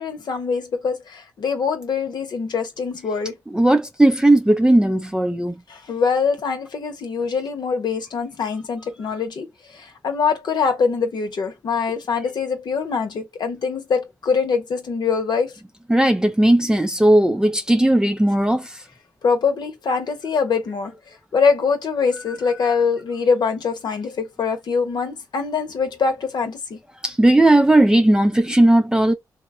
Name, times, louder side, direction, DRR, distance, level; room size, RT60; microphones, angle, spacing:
voice 1, 0.0-3.4 5.7-15.6 19.2-20.9 21.3-26.8, left 5 dB, 70° left, 0.9 m, -23 dB
voice 2, 3.5-5.5 15.9-18.8 27.0-29.1, right 1 dB, 10° right, 0.4 m, -16 dB
3.0 x 2.2 x 2.5 m
cardioid pair, 55°, 8 cm